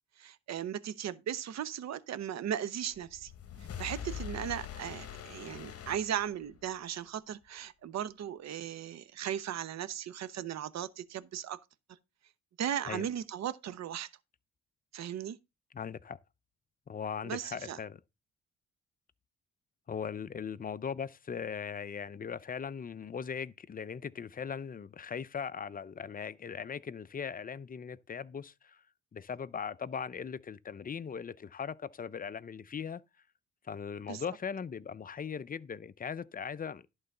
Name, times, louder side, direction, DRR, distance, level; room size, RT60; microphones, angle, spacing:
voice 1, 0.2-3.3 3.8-11.6 12.6-14.1 14.9-15.4 17.2-17.8 34.1-34.2, right 10 dB, 60° right, 0.9 m, -37 dB
sound 1, 3.0-6.8, left 8 dB, 50° left, 1.1 m, -43 dB
voice 2, 15.7-16.2 16.9-18.0 19.9-28.8 29.1-33.0 33.6-36.9, left 6 dB, 30° left, 0.5 m, -39 dB
11.0 x 3.9 x 6.6 m
cardioid pair, 90°, 30 cm